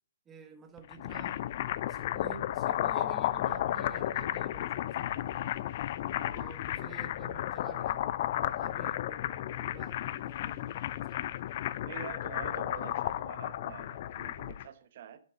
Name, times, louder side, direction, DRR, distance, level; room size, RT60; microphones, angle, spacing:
voice 1, 0.2-1.5 1.9-5.5 6.1-8.1 8.3-11.7, right 5 dB, 15° right, 1.5 m, -51 dB
sound 1, 0.8-14.7, left 13 dB, 40° left, 0.5 m, -33 dB
voice 2, 11.8-15.2, right 9 dB, 45° right, 1.0 m, -46 dB
10.5 x 9.7 x 3.7 m
figure-of-eight pair, 125°, 0 cm